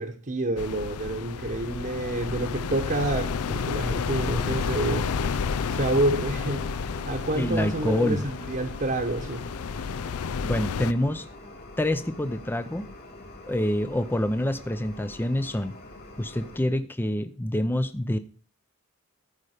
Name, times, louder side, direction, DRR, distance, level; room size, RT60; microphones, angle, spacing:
voice 1, 0.0-5.1 5.7-6.7 7.0-9.5, right 2 dB, 40° right, 2 dB, 1.0 m, -28 dB
sound 1, 0.6-10.9, left 5 dB, 80° left, 0.5 m, -31 dB
sound 2, 1.6-16.6, left 2 dB, 45° left, 2.9 m, -43 dB
voice 2, 7.3-8.3 10.4-11.2 11.8-12.9 13.5-15.7 16.2-18.2, left 1 dB, 10° left, 10 dB, 0.5 m, -26 dB
14.0 x 5.2 x 5.0 m, 0.39 s
head